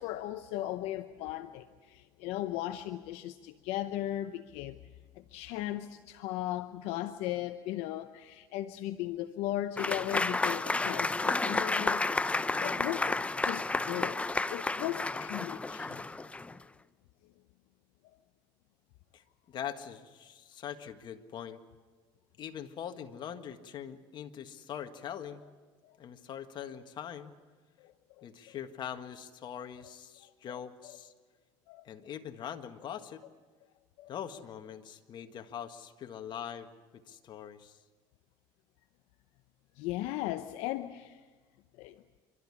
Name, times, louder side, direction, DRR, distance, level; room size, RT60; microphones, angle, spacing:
voice 1, 0.0-4.8 5.2-13.2 13.4-14.2 14.5-16.0 25.8-25.9 27.8-28.6 31.7-31.8 34.0-34.1 39.8-41.2 41.8-42.0, left 14 dB, 75° left, 9 dB, 0.8 m, -37 dB
Applause / Crowd, 9.8-16.6, left 3 dB, 10° left, 0.7 m, -31 dB
voice 2, 19.1-21.6 22.4-25.4 26.0-27.3 28.2-31.1 31.8-33.2 34.1-36.7 36.9-37.8, left 9 dB, 50° left, 7 dB, 1.7 m, -42 dB
27.5 x 13.0 x 9.9 m, 1.4 s
supercardioid pair, 95°, 10 cm